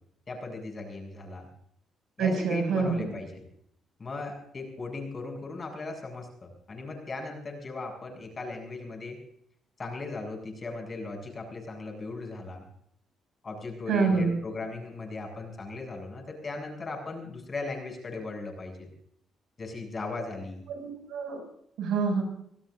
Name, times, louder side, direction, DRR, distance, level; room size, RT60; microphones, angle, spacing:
voice 1, 0.3-1.5 2.2-3.5 4.0-9.2 9.8-12.6 13.4-18.9 19.6-20.6, left 3 dB, 35° left, 2 dB, 7.6 m, -37 dB
voice 2, 2.2-3.1 13.9-14.4 20.7-21.4 21.8-22.2, right 5 dB, 85° right, 3 dB, 6.6 m, -26 dB
26.0 x 16.5 x 2.6 m, 0.69 s
cardioid pair, 90°, 0 cm